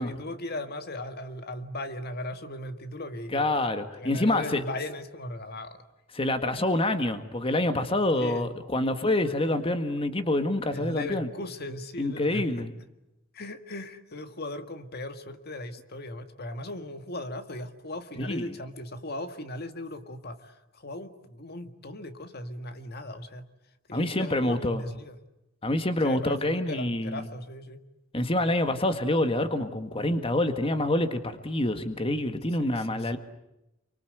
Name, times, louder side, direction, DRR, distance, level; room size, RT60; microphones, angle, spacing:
voice 1, 0.0-3.5 4.0-5.8 8.2-8.5 10.7-12.7 13.3-23.5 23.9-25.2 26.0-27.8 32.6-33.2, left 1 dB, 55° left, 8 dB, 1.9 m, -38 dB
voice 2, 3.3-4.6 6.2-11.3 12.0-12.7 18.2-18.5 23.9-24.8 25.6-27.2 28.1-33.2, left 1 dB, 30° left, 8 dB, 1.8 m, -27 dB
28.5 x 24.5 x 8.0 m, 0.90 s
head